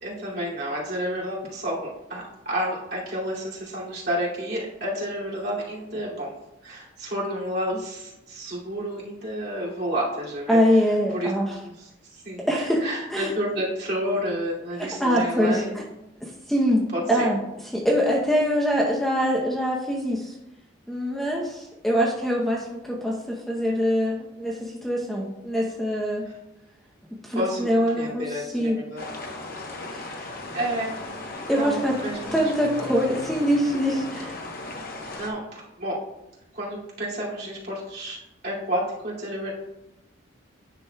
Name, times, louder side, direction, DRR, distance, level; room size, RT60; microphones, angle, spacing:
voice 1, 0.0-6.3 6.6-10.8 11.1-12.5 12.8-15.8 16.9-17.3 26.2-26.3 27.3-29.1 30.1-31.0 31.5-32.5 35.2-36.0 36.5-38.2 38.4-39.5, equal, 50° right, -6 dB, 2.4 m, -30 dB
voice 2, 10.5-11.5 12.5-12.8 13.1-13.3 15.0-15.8 16.5-16.8 17.1-17.4 17.7-20.3 20.9-26.2 27.2-28.8 29.9-30.1 31.5-32.0 32.3-34.4, equal, ahead, -3 dB, 0.7 m, -24 dB
sound 1, 29.0-35.3, left 2 dB, 45° left, 0.9 m, -37 dB
9.9 x 6.0 x 2.3 m, 0.91 s
head